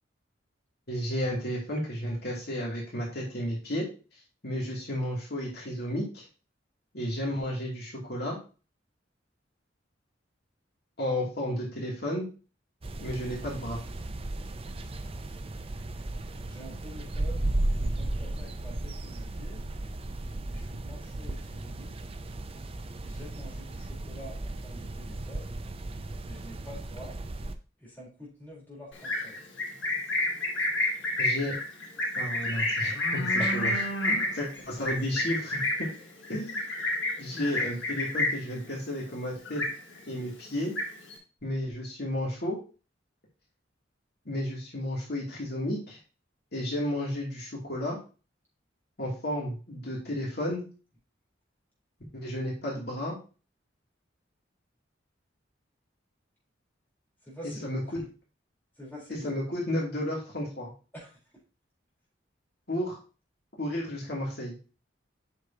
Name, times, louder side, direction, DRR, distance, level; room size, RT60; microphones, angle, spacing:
voice 1, 0.9-3.9 4.4-6.2 6.9-8.4 11.0-12.3 13.0-13.8 31.2-31.5 32.1-33.7 34.1-35.9 36.3-36.6 37.2-39.6 40.1-40.7 41.4-42.6 44.3-46.0 46.5-48.0 49.0-50.6 52.1-53.2 57.6-58.0 59.2-60.7 62.7-63.0 63.6-64.5, left 1 dB, 60° left, -3 dB, 2.6 m, -32 dB
sound 1, 12.8-27.6, right 1 dB, 30° right, 0.6 m, -35 dB
voice 2, 16.4-17.5 17.8-19.6 20.4-21.9 23.0-25.5 26.2-27.2 27.8-29.4 33.4-33.6 57.2-58.1 58.8-59.4 60.9-61.2, equal, 10° left, -5 dB, 3.9 m, -46 dB
Livestock farm animals working animals, 28.9-38.5 38.9-39.2 39.4-40.1 40.5-41.2, left 1 dB, 80° left, 2.4 m, -29 dB
8.3 x 6.3 x 2.8 m, 0.34 s
head